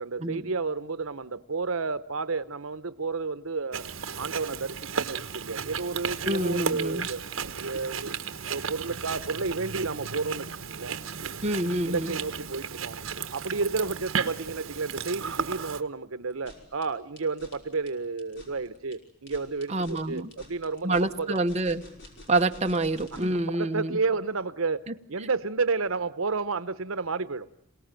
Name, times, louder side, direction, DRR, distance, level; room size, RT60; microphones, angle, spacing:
voice 1, 0.0-3.9 4.2-7.2 7.6-8.2 8.5-11.0 11.9-13.0 13.3-21.4 23.1-27.5, right 4 dB, 85° right, 13 dB, 0.9 m, -31 dB
Chewing mastication, 3.7-15.8, right 6 dB, 70° right, 1.2 m, -34 dB
voice 2, 6.2-7.1 11.4-12.2 19.7-20.3 20.8-21.8 22.3-24.0, right 2 dB, 35° right, 5 dB, 1.2 m, -27 dB
sound 1, 16.3-23.4, left 1 dB, 60° left, 5.5 m, -50 dB
27.0 x 18.0 x 9.0 m, 0.80 s
head